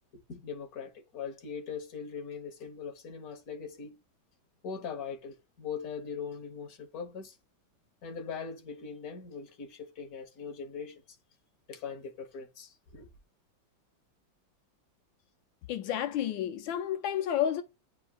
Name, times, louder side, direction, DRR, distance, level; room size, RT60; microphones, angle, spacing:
voice 1, 0.3-4.0 4.6-7.4 8.0-11.0 11.7-13.1, left 6 dB, 50° left, 1.6 m, -41 dB
voice 2, 15.7-17.6, left 10 dB, 85° left, 1.4 m, -30 dB
9.8 x 4.4 x 2.4 m
omnidirectional pair, 2.1 m